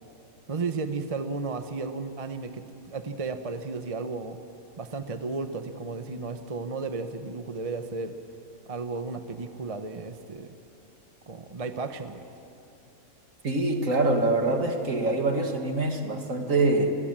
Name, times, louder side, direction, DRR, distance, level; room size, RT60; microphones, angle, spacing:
voice 1, 0.5-4.4 4.8-8.2 8.7-10.5 11.3-12.2, right 4 dB, 25° right, 8 dB, 0.9 m, -34 dB
voice 2, 13.4-16.9, right 2 dB, 60° right, 3 dB, 2.6 m, -25 dB
28.5 x 22.0 x 7.5 m, 2.8 s
omnidirectional pair, 1.5 m